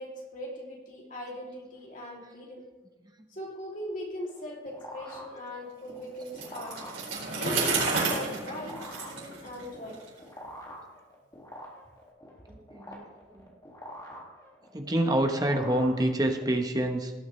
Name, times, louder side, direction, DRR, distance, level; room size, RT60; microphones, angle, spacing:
voice 1, 0.0-2.6 3.3-6.8 7.3-10.0, left 1 dB, 45° left, -2 dB, 2.8 m, -39 dB
sound 1, 4.2-16.6, equal, 20° left, 2.1 m, -46 dB
Bicycle, 6.3-10.1, right 3 dB, 90° right, 4.4 m, -31 dB
voice 2, 12.5-13.5 14.7-17.1, right 1 dB, 20° right, 4 dB, 0.9 m, -27 dB
17.5 x 8.4 x 3.2 m, 1.2 s
head